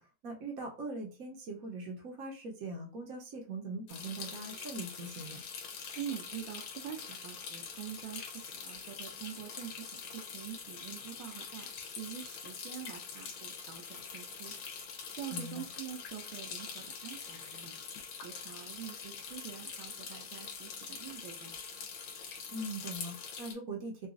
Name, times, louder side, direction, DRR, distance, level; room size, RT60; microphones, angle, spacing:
voice 1, 0.0-5.4 15.3-15.7 22.5-24.1, right 2 dB, 55° right, 1 dB, 1.0 m, -41 dB
sound 1, 3.9-23.5, left 6 dB, 75° left, 1.6 m, -44 dB
voice 2, 5.9-11.7 12.0-14.5 15.2-17.8 18.1-21.5, right 10 dB, 80° right, 3 dB, 1.4 m, -45 dB
3.8 x 2.3 x 2.5 m, 0.34 s
omnidirectional pair, 2.3 m